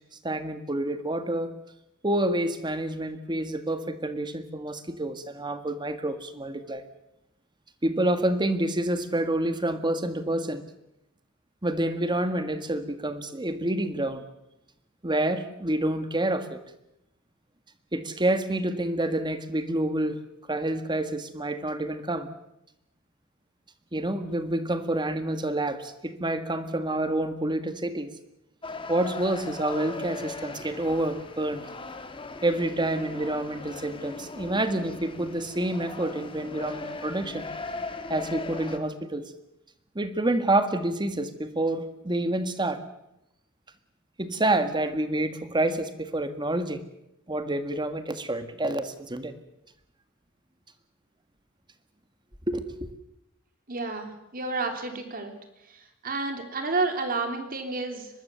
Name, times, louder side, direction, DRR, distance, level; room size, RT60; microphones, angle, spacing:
voice 1, 0.2-1.5 2.0-6.8 7.8-10.6 11.6-14.2 15.0-16.6 17.9-20.2 20.5-22.3 23.9-28.1 28.9-31.6 32.4-37.5 38.1-39.3 39.9-42.8 44.2-46.8 47.3-49.3 52.5-52.9, right 1 dB, 20° right, 10 dB, 1.7 m, -28 dB
sound 1, 28.6-38.8, left 3 dB, 25° left, 1.9 m, -39 dB
voice 2, 53.7-55.3 55.7-58.1, right 3 dB, 45° right, 5 dB, 3.3 m, -30 dB
23.5 x 20.5 x 6.9 m, 0.87 s
head